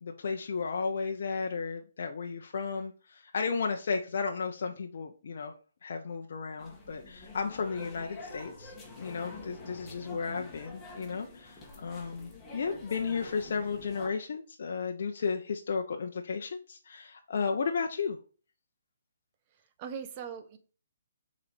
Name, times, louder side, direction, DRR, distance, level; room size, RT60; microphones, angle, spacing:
voice 1, 0.0-5.5 5.8-18.2, left 5 dB, 60° left, 3 dB, 0.8 m, -34 dB
sound 1, 6.6-14.1, left 2 dB, 15° left, 2.0 m, -47 dB
voice 2, 10.1-10.5 19.8-20.6, right 7 dB, 30° right, 8 dB, 1.1 m, -41 dB
6.8 x 4.3 x 4.9 m, 0.38 s
hypercardioid pair, 150°, 0 cm